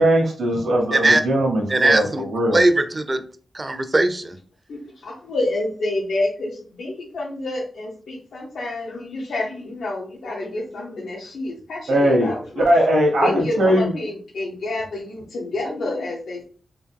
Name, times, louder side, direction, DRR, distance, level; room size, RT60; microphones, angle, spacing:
voice 1, 0.0-2.6 11.9-13.9, right 1 dB, 85° right, -1 dB, 1.2 m, -19 dB
voice 2, 0.9-1.2 1.7-2.2 2.5-3.2 3.5-4.4, right 2 dB, 20° right, 9 dB, 0.4 m, -19 dB
voice 3, 4.7-12.7 13.2-16.4, left 2 dB, 90° left, -3 dB, 0.9 m, -28 dB
3.6 x 2.6 x 3.5 m, 0.42 s
wide cardioid pair, 170°, 0 cm